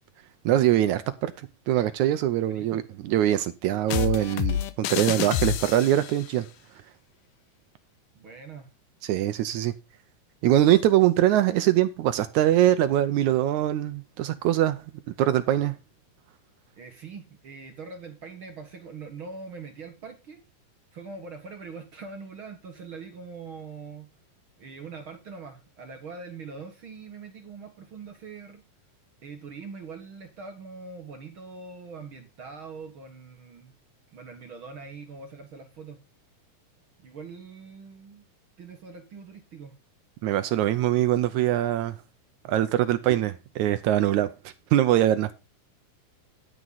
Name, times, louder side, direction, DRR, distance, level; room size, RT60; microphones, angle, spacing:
voice 1, 0.5-1.3 1.7-6.5 9.0-9.7 10.4-14.8 15.2-15.7 40.2-42.0 42.5-44.3 44.7-45.3, right 12 dB, 80° right, 1.8 m, -23 dB
voice 2, 2.4-2.8 8.1-8.7 16.8-20.4 20.9-24.1 24.6-28.6 29.2-33.7 34.1-36.0 37.0-38.3 38.6-39.7, right 4 dB, 50° right, 1.8 m, -42 dB
sound 1, 3.9-6.2, left 11 dB, 70° left, 2.3 m, -28 dB
11.0 x 9.3 x 4.0 m
omnidirectional pair, 4.1 m